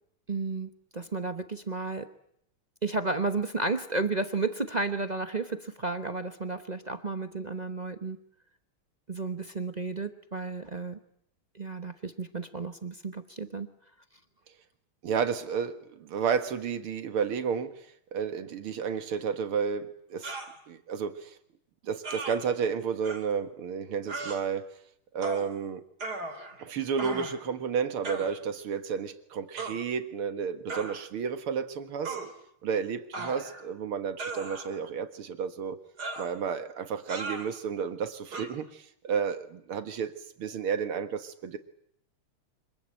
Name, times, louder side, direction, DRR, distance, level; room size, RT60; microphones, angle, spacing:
voice 1, 0.3-2.1 2.8-8.2 9.1-11.0 11.5-13.7, right 3 dB, 30° right, 8 dB, 0.8 m, -32 dB
voice 2, 15.0-20.4 20.7-21.4 21.8-24.8 25.1-25.8 26.6-32.2 32.6-35.8 36.2-41.6, right 6 dB, 90° right, 9 dB, 2.5 m, -32 dB
sound 1, 20.2-20.5 22.0-22.4 23.0-23.2 24.1-24.4 25.2-25.5 26.0-26.6 27.0-27.4 28.0-28.3 29.6-29.8 30.7-31.0 32.0-32.3 33.1-33.7 34.2-34.8 36.0-36.3 37.1-37.5 38.3-38.5, right 3 dB, 50° right, 3.4 m, -37 dB
26.0 x 22.5 x 9.0 m, 0.70 s
omnidirectional pair, 2.3 m